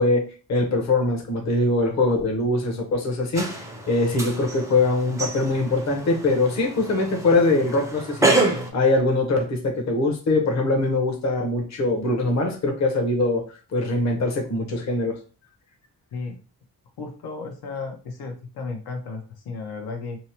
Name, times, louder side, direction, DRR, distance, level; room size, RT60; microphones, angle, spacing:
voice 1, 0.0-3.5 3.9-8.4 8.7-13.4 13.7-15.2, left 2 dB, 50° left, 2 dB, 0.7 m, -22 dB
sound 1, 3.3-8.7, right 2 dB, 10° right, 0.4 m, -27 dB
voice 2, 17.0-20.2, left 4 dB, 85° left, 4 dB, 0.7 m, -34 dB
2.8 x 2.0 x 2.8 m, 0.36 s
wide cardioid pair, 155°, 37 cm